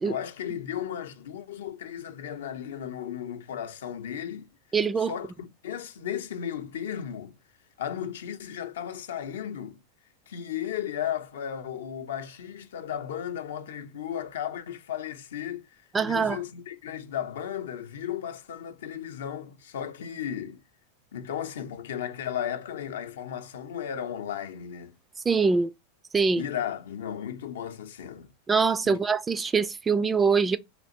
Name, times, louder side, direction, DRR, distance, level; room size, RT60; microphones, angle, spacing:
voice 1, 0.0-4.5 5.0-7.3 7.8-9.8 10.3-20.6 21.1-24.9 26.3-28.3 28.8-29.0, left 9 dB, 80° left, 0.5 m, -35 dB
voice 2, 4.7-5.1 15.9-16.4 25.3-25.7 26.1-26.4 28.5-30.6, right 5 dB, 20° right, 0.3 m, -23 dB
3.3 x 2.5 x 2.7 m
hypercardioid pair, 105°, 0 cm